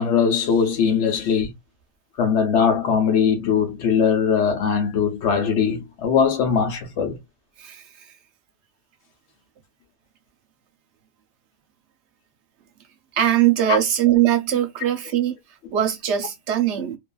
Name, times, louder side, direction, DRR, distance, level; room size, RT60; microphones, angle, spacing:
voice 1, 0.0-1.5 2.2-7.2 13.7-13.8, left 6 dB, 60° left, 1.0 m, -20 dB
voice 2, 13.1-15.4 15.7-17.0, right 11 dB, 60° right, 0.8 m, -21 dB
2.6 x 2.4 x 2.2 m
omnidirectional pair, 1.4 m